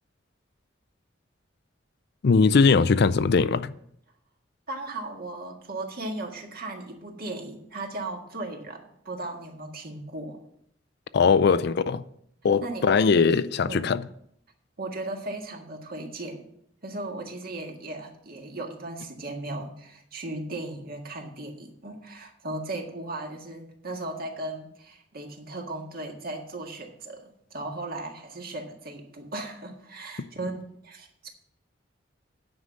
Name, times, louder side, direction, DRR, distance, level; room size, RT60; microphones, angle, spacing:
voice 1, 2.2-3.7 11.1-12.0 12.4-14.0, left 5 dB, 55° left, 0.4 m, -20 dB
voice 2, 4.7-10.4 12.6-13.2 13.6-13.9 14.8-16.5 16.8-31.3, right 2 dB, 50° right, 1.7 m, -37 dB
9.6 x 5.5 x 7.5 m
head